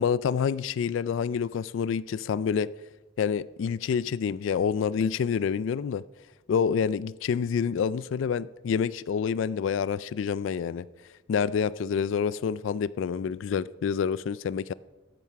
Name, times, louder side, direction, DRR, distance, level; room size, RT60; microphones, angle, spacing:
voice 1, 0.0-2.7 3.2-6.0 6.5-10.9 11.3-14.7, left 6 dB, 75° left, 0.3 m, -27 dB
13.5 x 9.2 x 5.8 m
head